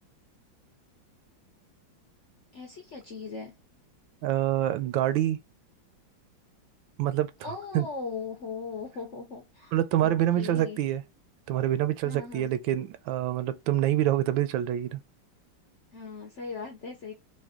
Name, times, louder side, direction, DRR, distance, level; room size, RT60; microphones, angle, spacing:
voice 1, 2.5-3.6 7.4-9.8 10.0-10.8 12.0-12.5 15.9-17.1, left 4 dB, 60° left, 0.8 m, -39 dB
voice 2, 4.2-5.4 7.0-7.3 7.7-7.9 9.7-11.0 11.5-15.0, right 12 dB, 80° right, 1.3 m, -26 dB
4.1 x 2.5 x 3.6 m
omnidirectional pair, 2.2 m